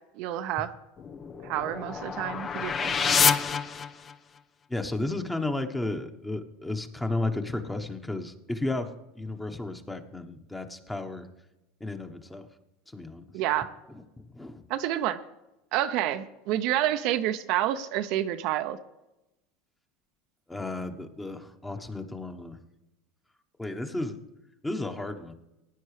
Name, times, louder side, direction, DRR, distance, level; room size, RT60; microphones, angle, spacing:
voice 1, 0.2-0.7 1.4-3.2 13.3-13.7 14.7-15.2 15.7-18.8, right 12 dB, 60° right, 9 dB, 0.6 m, -29 dB
sound 1, 1.0-4.4, left 6 dB, 30° left, 0.6 m, -27 dB
voice 2, 4.7-11.3 11.8-12.5 12.9-13.3 13.9-14.0 14.3-14.6 20.5-22.6 23.6-24.2 24.6-25.3, left 2 dB, 10° left, 7 dB, 1.1 m, -33 dB
17.0 x 9.5 x 3.3 m, 0.95 s
hypercardioid pair, 90°, 0 cm